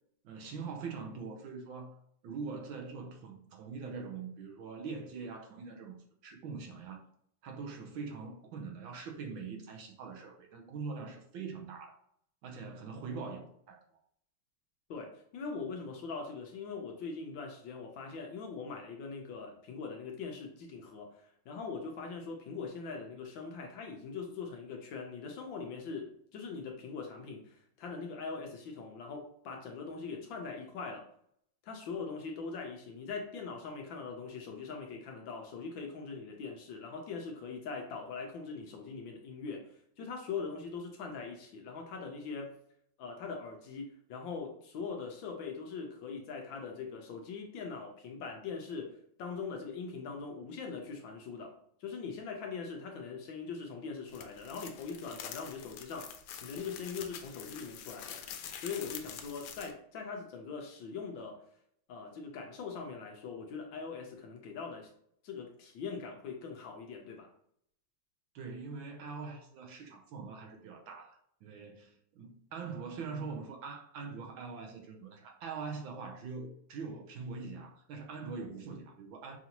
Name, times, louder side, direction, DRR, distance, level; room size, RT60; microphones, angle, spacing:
voice 1, 0.2-1.9 2.2-7.0 7.4-12.0 12.4-13.8 68.3-79.4, right 4 dB, 70° right, 1.4 m, -43 dB
voice 2, 14.9-31.0 31.6-42.6 43.0-51.5 51.8-56.1 56.4-58.2 58.6-61.4 61.9-64.9 65.2-67.3, left 5 dB, 70° left, 1.3 m, -42 dB
sound 1, 54.1-59.7, left 8 dB, 85° left, 1.5 m, -46 dB
5.7 x 2.6 x 2.8 m
omnidirectional pair, 2.4 m